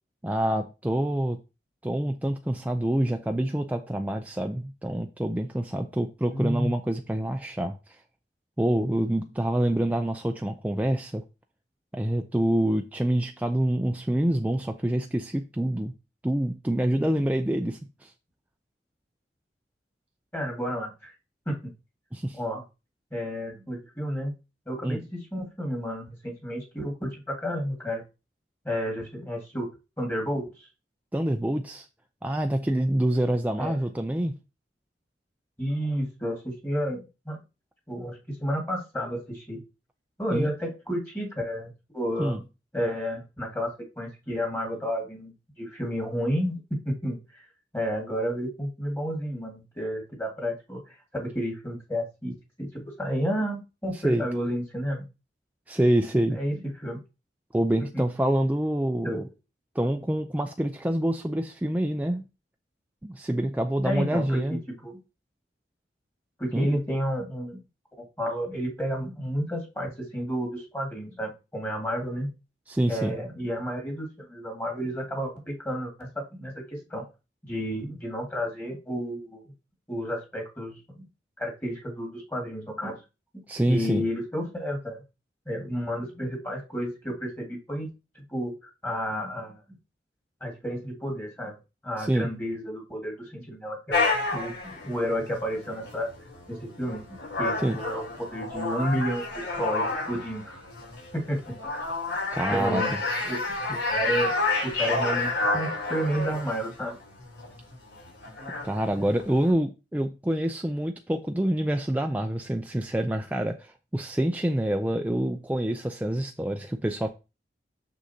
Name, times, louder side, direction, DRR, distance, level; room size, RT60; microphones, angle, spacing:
voice 1, 0.2-1.4 1.8-7.8 8.6-11.2 11.9-15.9 16.2-18.1 22.1-22.4 24.8-25.0 31.1-31.9 32.2-34.3 40.3-40.5 42.2-42.4 54.0-54.2 55.7-56.4 57.5-59.2 59.8-62.2 63.0-64.6 66.5-66.7 72.7-73.2 83.5-84.0 92.0-92.3 97.6-97.8 102.3-102.8 108.6-117.1, right 1 dB, 10° right, 0.4 m, -26 dB
voice 2, 6.3-6.7 20.3-21.1 21.5-21.6 22.3-22.6 23.1-24.3 24.7-28.0 28.6-29.7 30.0-30.7 33.6-33.8 35.6-37.4 37.9-39.6 40.2-42.4 42.7-47.4 47.7-55.0 56.3-57.0 57.8-58.0 59.0-59.2 63.8-65.0 66.4-67.6 68.0-72.3 72.9-77.1 77.4-79.5 79.9-81.0 81.4-83.0 83.7-85.0 85.5-87.9 88.2-88.5 88.8-89.6 90.4-91.5 91.8-96.1 96.5-100.6 101.1-101.4 102.5-102.9 103.2-103.4 103.7-107.0, equal, 10° left, 1.8 m, -31 dB
sound 1, 93.9-109.5, left 3 dB, 75° left, 3.8 m, -30 dB
6.4 x 6.3 x 2.8 m
head